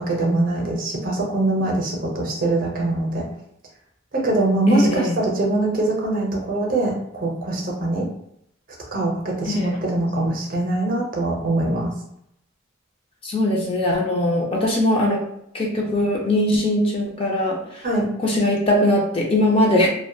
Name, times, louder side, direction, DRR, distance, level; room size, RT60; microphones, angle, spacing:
voice 1, 0.0-3.3 4.1-8.1 8.9-11.9 17.8-18.1, right 2 dB, 45° right, -1 dB, 0.6 m, -23 dB
voice 2, 4.7-5.1 9.5-9.8 13.2-15.2 15.5-17.9 18.2-19.9, left 1 dB, 25° left, -1 dB, 0.4 m, -20 dB
2.7 x 2.1 x 2.2 m, 0.75 s
head